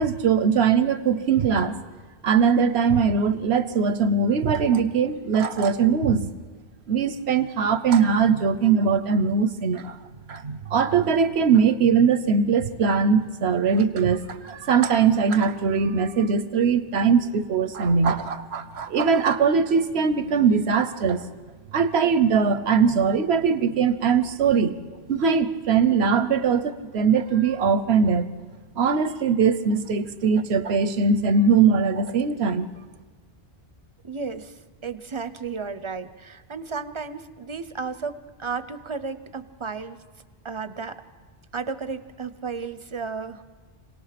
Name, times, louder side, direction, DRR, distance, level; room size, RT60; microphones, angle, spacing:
voice 1, 0.0-1.8 2.2-6.3 6.9-10.0 10.3-21.2 21.7-24.8 25.1-28.3 28.8-32.7, right 6 dB, 85° right, 12 dB, 1.1 m, -21 dB
voice 2, 34.0-34.5 34.8-40.0 40.4-41.0 41.5-43.4, right 5 dB, 35° right, 12 dB, 0.7 m, -33 dB
26.0 x 18.5 x 5.9 m, 1.4 s
omnidirectional pair, 1.0 m